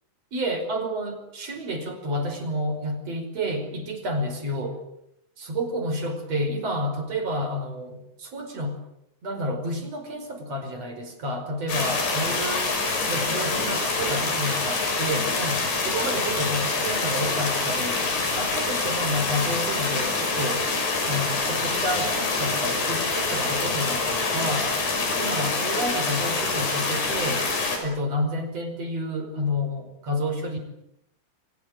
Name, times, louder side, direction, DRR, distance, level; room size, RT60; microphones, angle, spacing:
voice 1, 0.3-4.8 5.4-8.8 9.2-12.6 13.1-18.0 18.4-20.7 21.1-24.7 25.1-27.5 27.8-30.6, equal, 40° right, 6 dB, 6.1 m, -30 dB
sound 1, 11.7-27.8, left 3 dB, 80° left, 8.1 m, -26 dB
29.5 x 24.0 x 7.8 m, 0.80 s
omnidirectional pair, 4.7 m